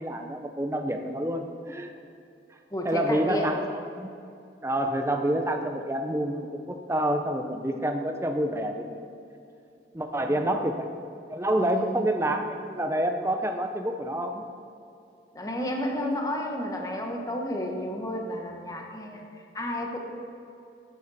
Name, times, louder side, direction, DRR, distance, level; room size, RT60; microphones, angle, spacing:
voice 1, 0.0-1.9 2.8-4.1 4.6-9.0 9.9-10.9 11.3-14.4, right 1 dB, 15° right, 5 dB, 0.7 m, -28 dB
voice 2, 2.7-3.6 10.4-10.6 11.6-12.0 15.3-19.2 19.5-20.0, left 1 dB, 20° left, 1 dB, 1.1 m, -31 dB
11.0 x 7.9 x 4.2 m, 2.6 s
head